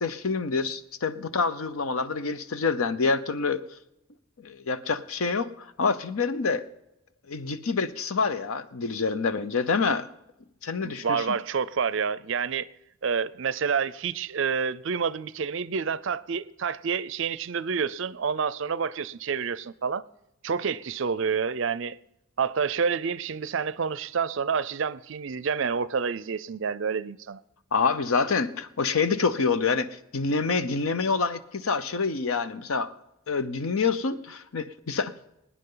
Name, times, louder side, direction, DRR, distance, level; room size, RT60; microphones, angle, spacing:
voice 1, 0.0-3.6 4.4-6.7 7.3-10.1 10.6-11.3 27.7-32.9 33.3-35.3, left 4 dB, 90° left, 0.8 m, -27 dB
voice 2, 10.8-12.7 13.0-20.0 20.4-22.0 22.4-27.4, right 6 dB, 60° right, 0.5 m, -28 dB
22.0 x 9.7 x 3.9 m
head